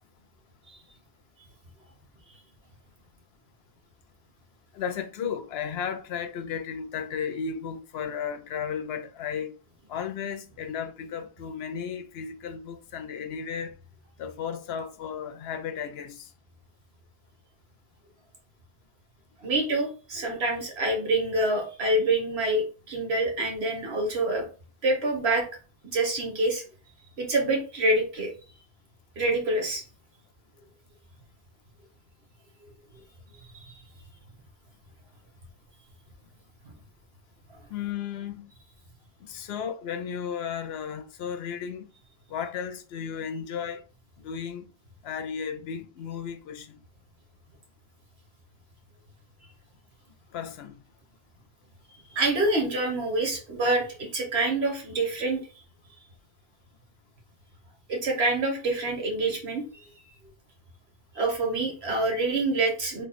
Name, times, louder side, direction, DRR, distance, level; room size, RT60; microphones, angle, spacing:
voice 1, 4.7-9.6 9.9-13.8 14.2-16.3 37.7-38.5 39.2-41.9 42.3-43.8 44.2-44.6 45.0-46.8 50.3-50.8, left 7 dB, 80° left, 0.8 m, -34 dB
voice 2, 19.4-24.4 24.8-25.5 25.9-26.6 27.2-28.3 29.2-29.8 33.5-33.8 36.6-36.7 52.1-55.4 57.9-59.6 61.1-63.0, right 2 dB, 85° right, 1.4 m, -26 dB
3.5 x 2.3 x 4.0 m
omnidirectional pair, 1.0 m